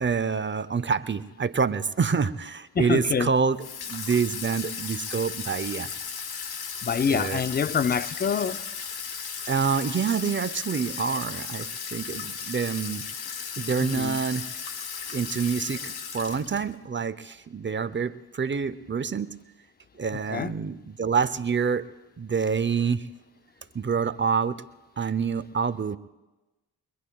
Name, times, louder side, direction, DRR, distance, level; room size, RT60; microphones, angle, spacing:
voice 1, 0.0-5.9 7.1-7.4 9.5-13.0 13.6-14.5 15.1-19.3 20.0-21.9 22.2-23.1 23.7-24.6 25.0-26.0, right 6 dB, 25° right, 0.7 m, -27 dB
voice 2, 2.7-3.3 6.8-8.6 13.9-14.2 20.3-20.5, left 6 dB, 20° left, 0.5 m, -26 dB
Water tap faucet / Sink (filling or washing), 3.6-16.7, left 6 dB, 60° left, 1.1 m, -36 dB
23.0 x 21.5 x 2.3 m
supercardioid pair, 50°, 43 cm